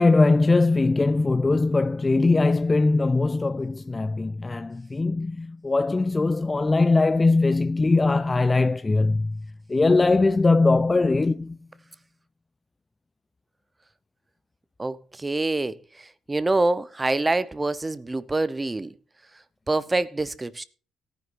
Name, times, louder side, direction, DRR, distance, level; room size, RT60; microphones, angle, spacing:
voice 1, 0.0-9.4 9.7-11.6, left 3 dB, 25° left, 0.4 m, -21 dB
voice 2, 14.8-18.9 19.7-20.6, right 2 dB, 20° right, 0.9 m, -26 dB
18.0 x 10.0 x 2.6 m
hypercardioid pair, 50°, 0 cm